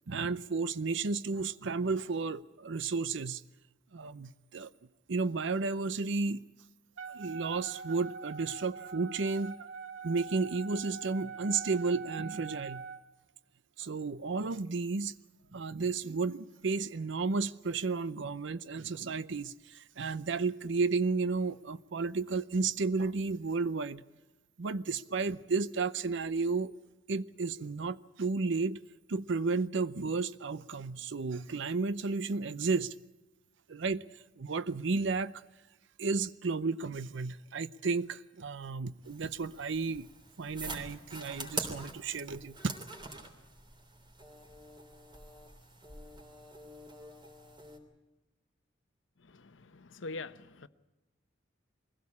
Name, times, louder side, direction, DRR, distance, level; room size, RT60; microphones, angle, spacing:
voice 1, 0.1-3.4 3.9-4.7 5.1-6.4 7.1-9.5 10.0-12.8 13.8-15.1 15.5-24.0 24.6-26.7 27.1-28.8 29.1-32.9 33.7-34.0 34.4-35.3 36.0-40.1 40.4-42.8, right 4 dB, 70° right, 0.6 m, -32 dB
Wind instrument woodwind instrument, 7.0-13.0, right 6 dB, 90° right, 1.2 m, -44 dB
sound 1, 39.0-47.8, right 2 dB, 25° right, 3.3 m, -45 dB
voice 2, 49.7-50.7, left 3 dB, 75° left, 0.9 m, -42 dB
22.0 x 16.5 x 8.5 m
head